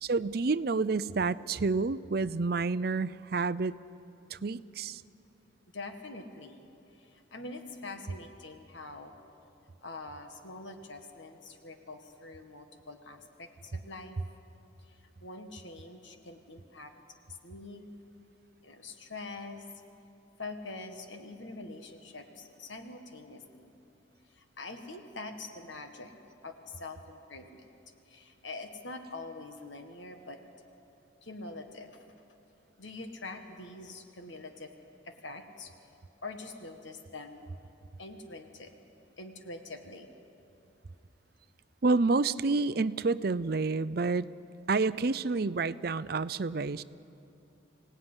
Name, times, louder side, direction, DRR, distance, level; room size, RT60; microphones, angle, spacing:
voice 1, 0.0-3.7 4.3-5.0 41.8-44.3 44.7-46.8, right 3 dB, 50° right, 16 dB, 0.5 m, -29 dB
voice 2, 5.7-6.6 6.9-9.1 9.8-14.2 14.8-16.9 17.4-17.8 18.6-19.6 20.4-23.7 24.3-26.1 26.4-27.7 28.1-30.4 31.2-32.0 32.8-34.7 35.0-35.7 36.2-37.4 38.0-38.7 39.2-40.1, left 2 dB, 75° left, 5 dB, 1.8 m, -44 dB
25.0 x 18.0 x 9.9 m, 2.7 s
head